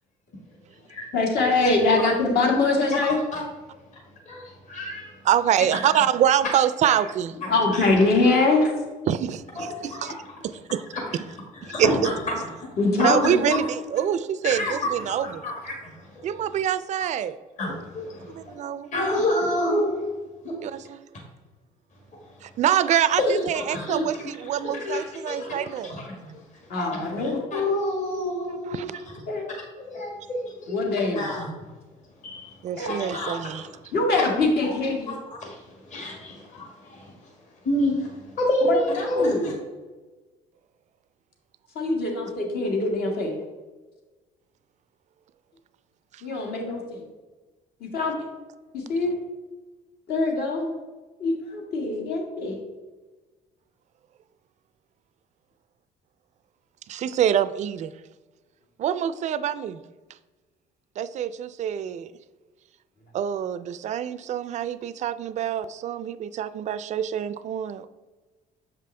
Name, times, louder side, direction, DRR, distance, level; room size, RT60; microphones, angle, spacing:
voice 1, 1.1-3.2 7.5-8.7 12.8-13.6 26.7-27.5 29.3-29.6 30.7-31.3 32.8-33.2 33.9-35.1 38.7-39.5 41.8-43.4 46.2-47.0 47.8-48.1 48.7-49.1 50.1-50.7 51.2-52.6, left 3 dB, 65° left, 0 dB, 1.8 m, -23 dB
voice 2, 4.3-5.1 5.7-5.8 6.9-7.0 7.4-8.0 9.6-10.1 11.1-11.2 11.6-12.8 13.2-13.4 14.4-16.3 17.6-18.6 18.9-20.0 20.4-20.6 23.2-26.4 26.7-29.1 29.9-31.5 32.2-32.5 32.9-33.7 34.6-34.7 35.1-35.6 35.9-37.1 37.7-39.5, left 1 dB, 45° left, -1 dB, 1.7 m, -29 dB
voice 3, 5.2-7.3 9.1-10.1 10.4-10.8 11.8-11.9 13.0-15.4 16.2-17.4 18.3-18.9 20.6-21.0 22.4-26.0 28.7-29.0 32.6-33.7 56.9-57.9 58.8-59.8 61.0-62.1 63.1-67.9, right 10 dB, 45° right, 14 dB, 0.4 m, -25 dB
7.2 x 5.2 x 3.3 m, 1.3 s
cardioid pair, 110°, 17 cm